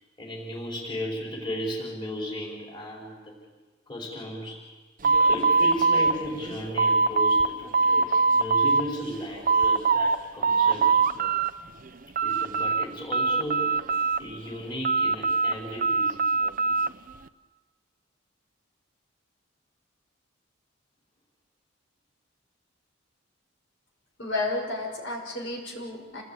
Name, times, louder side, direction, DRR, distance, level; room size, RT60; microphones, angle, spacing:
voice 1, 0.2-3.3 3.9-4.6 5.0-11.0 12.2-16.3, equal, 25° left, -2 dB, 4.9 m, -35 dB
sound 1, 5.0-7.5 7.7-8.8 9.2-10.2 10.4-11.5 11.9-12.8 13.1-14.4 14.8-16.9, right 4 dB, 40° right, 0.8 m, -22 dB
voice 2, 24.2-26.2, left 2 dB, 60° left, -1 dB, 5.9 m, -32 dB
28.5 x 19.0 x 9.0 m, 1.3 s
head